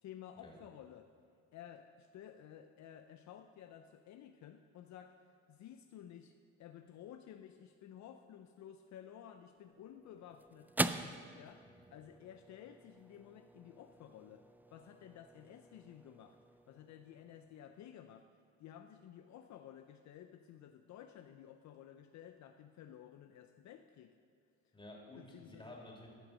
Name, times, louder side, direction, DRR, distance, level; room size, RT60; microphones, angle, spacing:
voice 1, 0.0-1.1 1.5-5.2 5.5-10.7 11.3-11.7 11.9-16.4 16.7-18.3 18.6-24.2 25.2-25.7, left 10 dB, 65° left, 7 dB, 0.5 m, -54 dB
sound 1, 9.5-18.0, right 2 dB, 5° right, 0.3 m, -44 dB
voice 2, 24.7-26.1, left 1 dB, 15° left, -1 dB, 2.7 m, -53 dB
13.5 x 5.9 x 6.3 m, 2.4 s
cardioid pair, 90°, 30 cm